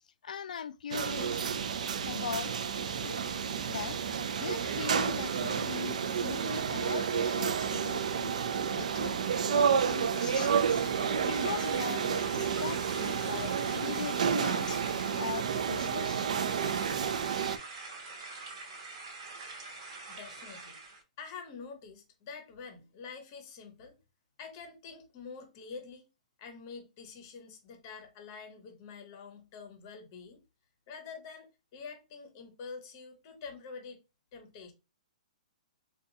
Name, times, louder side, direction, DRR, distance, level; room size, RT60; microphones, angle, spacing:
voice 1, 0.2-1.5 2.1-2.6 2.9-4.0 4.4-8.4 8.7-10.8 11.2-14.8 15.1-16.3, left 7 dB, 80° left, 0.4 m, -40 dB
sound 1, 0.9-17.6, right 7 dB, 65° right, 0.4 m, -30 dB
sound 2, 9.9-17.1, left 2 dB, 10° right, 1.0 m, -56 dB
sound 3, 10.1-21.0, right 3 dB, 35° right, 0.9 m, -45 dB
voice 2, 20.1-20.8 21.2-24.0 24.4-26.1 26.4-30.4 30.9-34.0 34.3-34.7, left 5 dB, 25° left, 0.7 m, -46 dB
3.8 x 2.3 x 2.7 m
hypercardioid pair, 175°, 4 cm